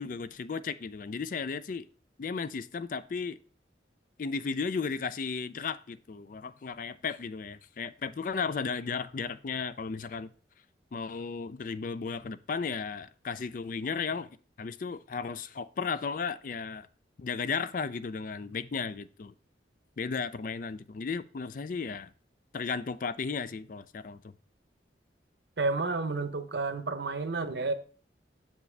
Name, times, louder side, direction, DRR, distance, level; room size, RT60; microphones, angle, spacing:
voice 1, 0.0-1.9 2.2-3.4 4.2-10.3 10.9-14.3 14.6-16.9 17.2-19.3 20.0-22.1 22.5-24.3, left 5 dB, 45° left, 0.4 m, -35 dB
voice 2, 25.6-27.7, right 3 dB, 65° right, 0.7 m, -30 dB
7.2 x 7.1 x 3.3 m
head